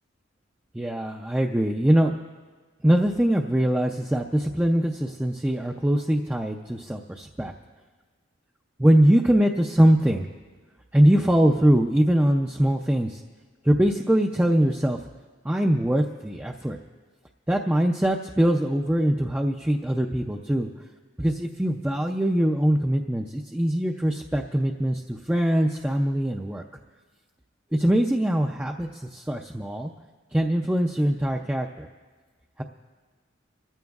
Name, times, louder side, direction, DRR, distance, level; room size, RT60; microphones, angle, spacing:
voice 1, 0.7-2.2 2.8-7.5 8.8-10.3 10.9-13.2 13.6-15.0 15.4-16.8 17.5-20.7 21.2-26.6 27.7-29.9 30.3-31.9 32.6-32.7, right 1 dB, 5° right, 2 dB, 0.4 m, -22 dB
25.5 x 14.5 x 2.4 m, 1.4 s
head